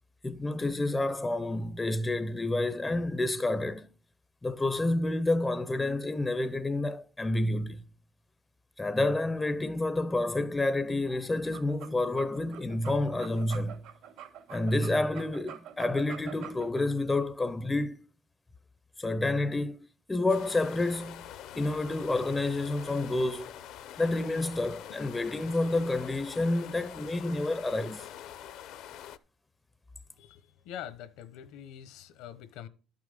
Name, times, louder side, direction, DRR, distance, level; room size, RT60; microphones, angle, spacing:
voice 1, 0.2-3.9 4.4-7.8 8.8-13.8 14.5-18.0 19.0-19.8 20.1-21.3 21.5-23.5 24.0-28.1, left 2 dB, 10° left, 0.5 m, -29 dB
sound 1, 11.4-16.8, right 9 dB, 85° right, 2.8 m, -46 dB
sound 2, 20.3-29.2, left 11 dB, 60° left, 0.6 m, -45 dB
voice 2, 30.2-32.7, left 10 dB, 80° left, 1.0 m, -44 dB
12.0 x 6.0 x 5.0 m
cardioid pair, 150°, 0 cm